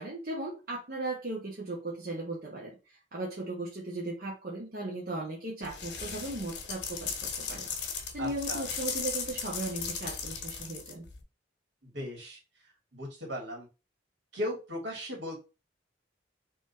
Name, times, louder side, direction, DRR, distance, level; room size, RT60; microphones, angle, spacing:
voice 1, 0.0-11.1, right 2 dB, 55° right, -4 dB, 1.2 m, -37 dB
sound 1, 5.6-11.2, left 6 dB, 70° left, 1.2 m, -37 dB
voice 2, 8.2-8.6 11.8-12.4 12.9-13.7 14.3-15.4, equal, 75° right, -1 dB, 2.3 m, -37 dB
3.8 x 3.1 x 4.2 m, 0.30 s
head